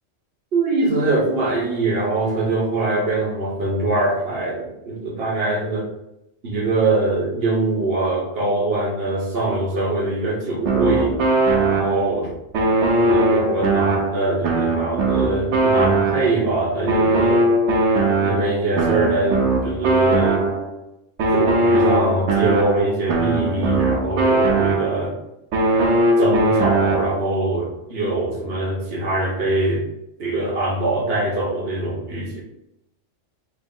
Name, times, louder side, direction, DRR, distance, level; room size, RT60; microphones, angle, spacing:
voice 1, 0.5-5.9 6.4-11.2 11.6-12.3 12.9-17.4 18.2-20.5 21.3-25.1 26.2-29.8 30.2-32.4, right 2 dB, 60° right, -2 dB, 1.2 m, -23 dB
sound 1, 10.6-12.2 12.5-16.5 16.9-20.8 21.2-25.1 25.5-27.3, right 2 dB, 75° right, 1.0 m, -19 dB
4.9 x 2.0 x 3.7 m, 0.87 s
omnidirectional pair, 1.2 m